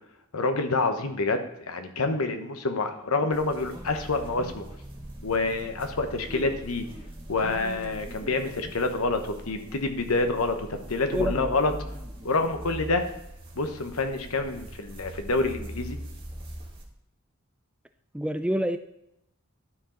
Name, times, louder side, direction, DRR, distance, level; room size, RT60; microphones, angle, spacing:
voice 1, 0.3-4.6 5.2-6.8 7.3-11.7 12.2-13.0 13.5-16.0, left 3 dB, 85° left, 7 dB, 1.0 m, -27 dB
sound 1, 3.3-16.8, right 1 dB, 25° right, 1.4 m, -41 dB
voice 2, 18.1-18.8, equal, 5° right, 9 dB, 0.3 m, -27 dB
12.0 x 4.9 x 3.8 m, 0.86 s
head